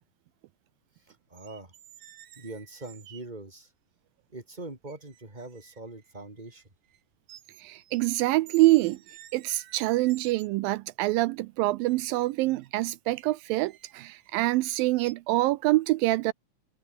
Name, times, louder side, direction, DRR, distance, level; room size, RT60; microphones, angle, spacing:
voice 1, 1.1-1.7 2.4-3.7 4.3-6.6, right 2 dB, 10° right, 4.2 m, -42 dB
sound 1, 1.3-3.3 4.2-4.3 4.9-7.0 7.3-8.1 8.5-10.7 11.9-14.5 15.0-15.1, right 11 dB, 60° right, 2.3 m, -53 dB
voice 2, 7.6-9.0 9.3-16.3, right 18 dB, 85° right, 2.4 m, -25 dB
omnidirectional pair, 4.1 m